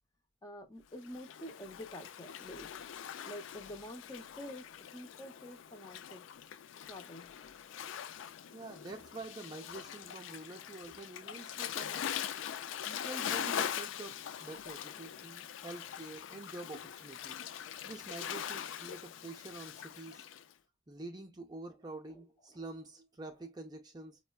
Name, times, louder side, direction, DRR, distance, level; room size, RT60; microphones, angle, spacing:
voice 1, 0.4-2.7 3.2-4.6 4.9-6.2 6.9-7.3 22.1-22.2 22.5-22.6, equal, 20° left, 0.7 m, -47 dB
Waves surf, 1.0-20.4, left 9 dB, 80° left, 0.3 m, -42 dB
voice 2, 8.5-12.1 12.8-17.5 17.8-20.3 20.9-24.2, right 2 dB, 20° right, 0.5 m, -47 dB
5.3 x 2.2 x 2.2 m
head